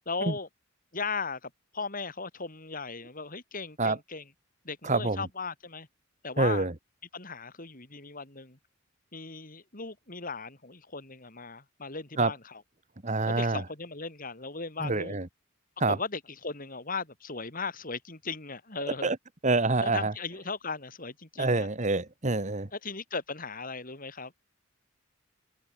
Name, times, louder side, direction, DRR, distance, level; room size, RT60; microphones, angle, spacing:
voice 1, 0.1-0.5 0.9-4.3 4.6-5.9 6.2-6.7 7.1-8.6 9.1-12.6 13.3-15.2 15.9-19.1 19.8-21.7 22.7-24.3, left 4 dB, 40° left, 3.6 m, -37 dB
voice 2, 4.8-5.2 6.4-6.7 12.2-12.3 13.0-13.6 14.8-15.3 15.8-16.0 19.0-19.2 19.4-20.1 21.4-22.7, right 3 dB, 35° right, 1.5 m, -26 dB
head